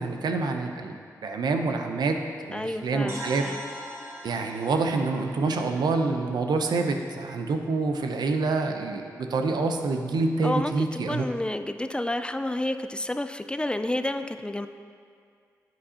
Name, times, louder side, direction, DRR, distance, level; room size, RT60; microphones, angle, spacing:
voice 1, 0.0-2.2 2.5-3.4 4.2-11.3, right 3 dB, 75° right, 4 dB, 0.6 m, -27 dB
voice 2, 2.5-3.6 10.4-14.7, left 1 dB, 15° left, 9 dB, 0.3 m, -30 dB
sound 1, 3.1-7.0, equal, 40° right, 1.6 m, -42 dB
8.5 x 7.6 x 2.8 m, 2.2 s
cardioid pair, 55°, 7 cm